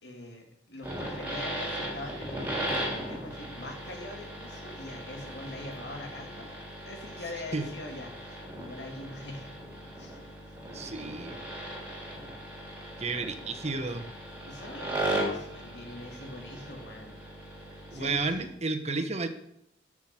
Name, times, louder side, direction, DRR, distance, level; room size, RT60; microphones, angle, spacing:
voice 1, 0.0-6.6 6.9-9.5 9.9-10.4 13.0-13.3 14.5-17.2 17.9-18.5 18.9-19.1, left 1 dB, 80° left, 3 dB, 2.3 m, -43 dB
sound 1, 0.8-18.5, right 1 dB, 10° right, 3.4 m, -37 dB
voice 2, 10.7-11.4 13.0-14.1 17.9-19.3, right 3 dB, 40° right, 7 dB, 1.0 m, -32 dB
9.7 x 6.2 x 7.6 m, 0.75 s
head